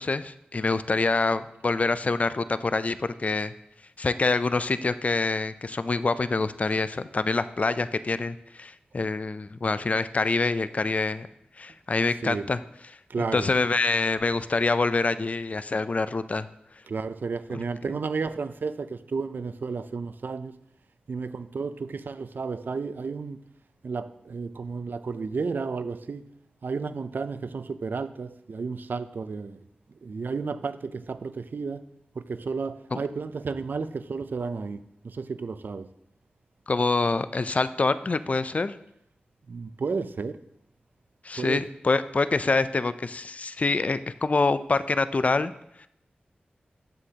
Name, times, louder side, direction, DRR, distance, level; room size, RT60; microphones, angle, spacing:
voice 1, 0.0-3.5 4.0-11.3 11.6-12.6 13.3-16.5 17.5-17.9 32.9-33.0 36.7-38.8 41.2-45.5, left 3 dB, 40° left, 0.4 m, -26 dB
voice 2, 13.1-13.6 16.9-20.5 21.1-23.4 23.8-26.3 26.6-29.6 30.0-31.8 32.2-34.8 35.0-35.9 39.5-40.4 41.4-41.6, right 4 dB, 70° right, 0.4 m, -32 dB
9.1 x 7.7 x 2.8 m
wide cardioid pair, 65°, 3 cm